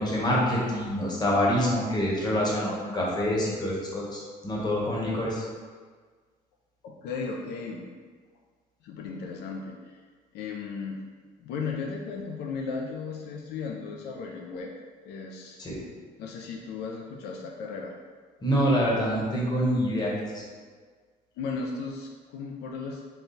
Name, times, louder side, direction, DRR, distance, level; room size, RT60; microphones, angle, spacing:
voice 1, 0.0-5.5 15.6-15.8 18.4-20.5, equal, 25° left, -4 dB, 1.0 m, -26 dB
voice 2, 6.8-7.9 8.8-10.0 10.3-11.0 11.4-14.7 15.1-15.6 16.2-17.9 21.4-23.0, left 4 dB, 75° left, 0 dB, 0.4 m, -35 dB
4.0 x 2.2 x 3.9 m, 1.5 s
cardioid pair, 110°, 17 cm